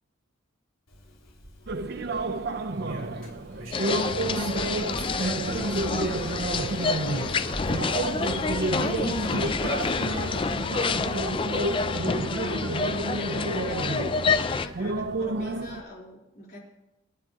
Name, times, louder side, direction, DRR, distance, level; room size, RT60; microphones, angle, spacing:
Engine, 0.9-11.8, left 1 dB, 85° left, 3.9 m, -43 dB
sound 1, 1.7-15.8, right 2 dB, 50° right, 0.6 m, -30 dB
voice 1, 2.7-6.1 7.6-8.0 11.9-12.0, right 1 dB, 75° right, 0 dB, 3.2 m, -41 dB
sound 2, 3.7-14.7, left 4 dB, 25° left, 0.3 m, -28 dB
voice 2, 6.7-7.8 8.4-9.8 12.9-14.0 14.3-16.6, left 1 dB, 50° left, -3 dB, 3.8 m, -43 dB
26.5 x 10.0 x 2.9 m, 0.95 s
head